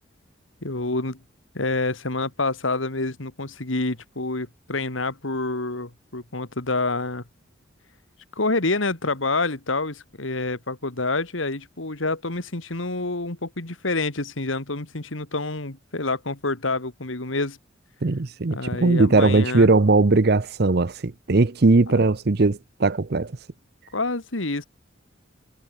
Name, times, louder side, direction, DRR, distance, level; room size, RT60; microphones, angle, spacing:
voice 1, 0.6-1.2 1.5-7.2 8.4-17.6 18.5-19.7 23.9-24.6, left 3 dB, 80° left, 2.4 m, -27 dB
voice 2, 18.0-23.3, right 3 dB, 55° right, 0.7 m, -19 dB
head